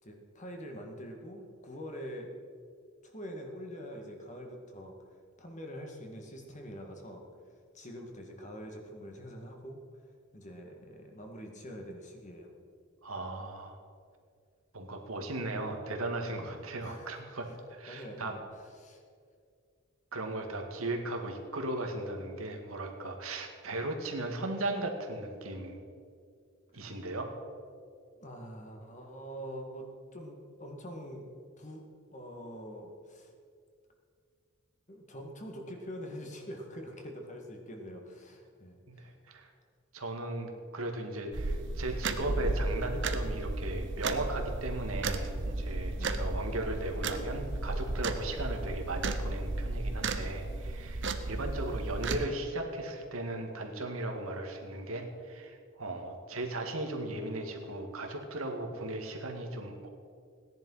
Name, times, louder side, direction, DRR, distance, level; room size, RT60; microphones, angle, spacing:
voice 1, 0.0-2.3 3.0-4.9 5.4-7.2 7.7-9.8 10.3-12.5 16.8-17.1 17.4-18.4 18.8-19.0 26.7-26.9 28.2-31.3 31.6-31.9 32.1-33.3 34.9-39.1 45.9-46.2 51.3-51.5, equal, 35° left, 2 dB, 2.0 m, -45 dB
voice 2, 13.0-13.8 14.7-18.3 20.1-25.8 26.7-27.3 38.9-39.5 39.9-59.9, right 2 dB, 85° right, 3 dB, 2.0 m, -37 dB
sound 1, 41.3-52.2, right 2 dB, 60° right, 1.0 m, -34 dB
17.0 x 10.5 x 5.7 m, 2.2 s
head